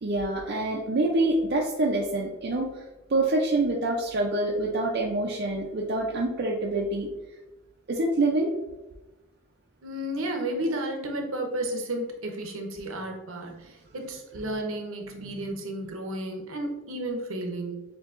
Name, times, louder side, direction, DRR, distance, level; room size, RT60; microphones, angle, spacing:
voice 1, 0.0-2.8 3.1-7.1 7.9-8.5 15.1-15.6, right 2 dB, 50° right, -1 dB, 0.5 m, -26 dB
voice 2, 9.8-17.8, right 1 dB, 70° right, 3 dB, 0.8 m, -32 dB
7.1 x 2.8 x 2.5 m, 1.1 s
head